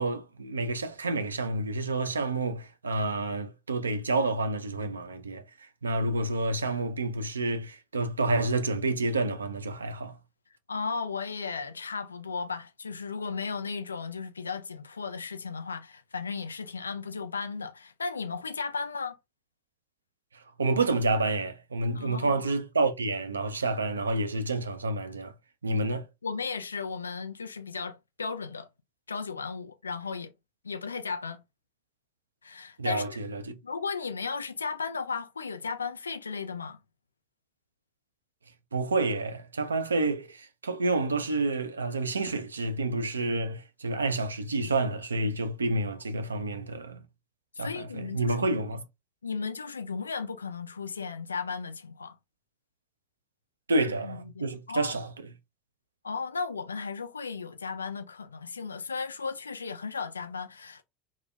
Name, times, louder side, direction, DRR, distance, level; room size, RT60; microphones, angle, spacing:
voice 1, 0.0-10.2 20.3-25.3 25.6-26.0 32.8-33.6 38.7-47.0 47.6-48.8 53.7-55.1, right 2 dB, 80° right, 0.3 m, -29 dB
voice 2, 10.7-19.2 21.9-22.4 25.7-28.7 29.1-30.3 30.6-31.4 32.4-33.2 33.6-36.8 45.6-45.8 46.1-46.3 47.5-48.6 49.2-52.2 53.7-55.0 56.0-60.8, left 5 dB, 80° left, 0.3 m, -35 dB
2.1 x 2.0 x 3.3 m
figure-of-eight pair, 75°, 0 cm